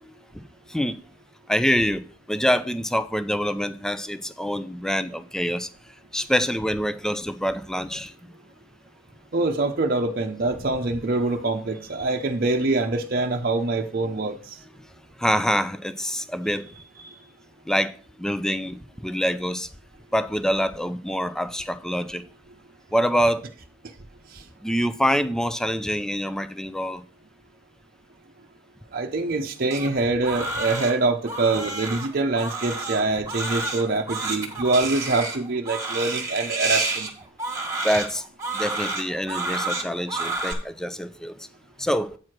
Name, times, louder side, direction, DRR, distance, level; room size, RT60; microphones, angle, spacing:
voice 1, 1.5-5.7 6.1-8.1 15.2-16.7 17.7-17.9 18.2-19.7 20.1-22.2 22.9-23.5 24.6-27.0 37.8-38.2 38.5-41.3 41.8-42.1, equal, 5° left, 0.4 m, -25 dB
voice 2, 9.3-14.4 17.0-17.1 28.9-37.1, right 3 dB, 45° right, 0.7 m, -24 dB
Crying sobbing, 29.7-40.5, right 3 dB, 15° right, 1.6 m, -30 dB
8.7 x 4.7 x 6.0 m
head